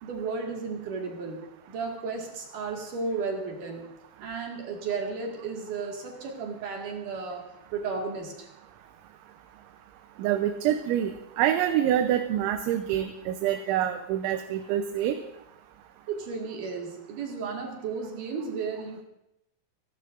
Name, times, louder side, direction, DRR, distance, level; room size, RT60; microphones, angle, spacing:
voice 1, 0.0-1.4 1.7-3.8 4.2-8.5 16.1-19.0, right 4 dB, 55° right, 0 dB, 3.0 m, -34 dB
voice 2, 10.2-15.2, right 11 dB, 85° right, 6 dB, 3.2 m, -26 dB
29.5 x 11.5 x 2.6 m, 0.84 s
omnidirectional pair, 5.3 m